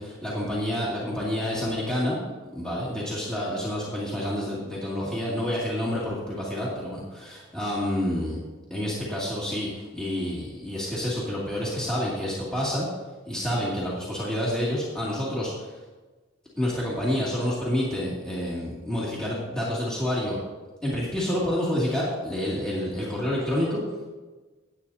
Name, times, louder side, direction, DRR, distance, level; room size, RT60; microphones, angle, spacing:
voice 1, 0.0-2.2 2.5-8.4 8.7-12.9 13.3-15.7 16.6-20.4 20.8-23.8, left 1 dB, 5° left, -8 dB, 2.5 m, -28 dB
18.0 x 8.7 x 2.8 m, 1.3 s
head